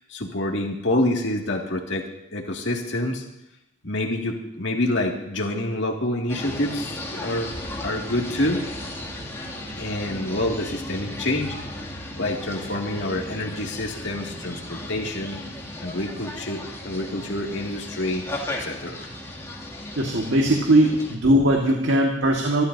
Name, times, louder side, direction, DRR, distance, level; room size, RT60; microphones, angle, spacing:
voice 1, 0.1-3.2 3.8-7.5 7.8-8.6 9.8-11.6 12.2-15.4 15.8-18.2 18.6-19.0, left 1 dB, 70° left, 0 dB, 2.2 m, -27 dB
sound 1, 6.3-21.2, left 1 dB, 15° left, 2.4 m, -35 dB
voice 2, 19.9-22.6, right 1 dB, 90° right, 0 dB, 1.7 m, -19 dB
25.5 x 13.0 x 2.7 m, 0.85 s
head